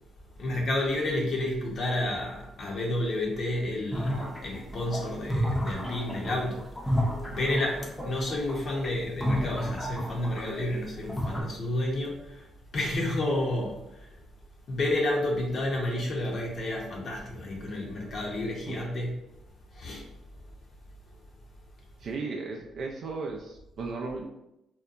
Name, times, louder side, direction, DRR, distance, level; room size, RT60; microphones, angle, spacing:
voice 1, 0.4-12.5 12.7-14.1 14.7-19.2 19.7-20.2, left 1 dB, 55° left, -1 dB, 0.6 m, -31 dB
sound 1, 3.9-10.6 10.9-11.4, equal, 10° left, 0.5 m, -31 dB
voice 2, 22.0-24.3, right 4 dB, 60° right, 0 dB, 0.3 m, -35 dB
2.7 x 2.1 x 2.4 m, 0.88 s
cardioid pair, 90°, 0 cm